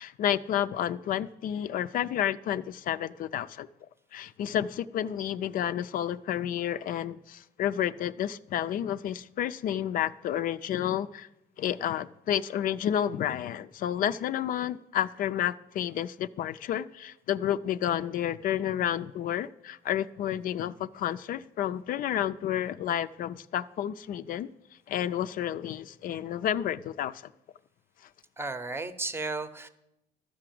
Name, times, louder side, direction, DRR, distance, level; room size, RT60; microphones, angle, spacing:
voice 1, 0.0-3.7 4.1-11.3 11.6-24.5 24.9-27.3, left 10 dB, 55° left, 13 dB, 0.4 m, -30 dB
voice 2, 28.4-29.7, right 3 dB, 15° right, 12 dB, 0.7 m, -34 dB
13.0 x 4.9 x 7.6 m, 0.86 s
cardioid pair, 110°, 17 cm